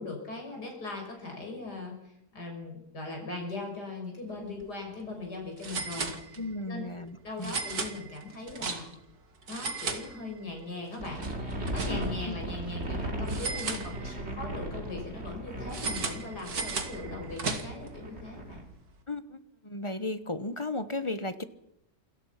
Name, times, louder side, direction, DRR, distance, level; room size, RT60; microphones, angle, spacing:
voice 1, 0.0-6.4 6.7-6.9 7.2-8.9 9.5-11.2 11.5-18.6, left 3 dB, 80° left, 1 dB, 6.6 m, -40 dB
sound 1, 4.4-4.6 4.9-5.0 5.6-6.7 7.4-9.1 9.4-10.6 10.9-12.3 13.3-14.4 15.7-17.9, right 4 dB, 65° right, 2.6 m, -36 dB
voice 2, 6.4-7.6 11.9-12.0 12.2-12.4 19.1-21.4, left 2 dB, 20° left, 12 dB, 1.1 m, -35 dB
sound 2, 11.0-18.6, right 1 dB, 40° right, 3.5 m, -37 dB
28.5 x 20.5 x 5.9 m, 0.79 s
omnidirectional pair, 1.7 m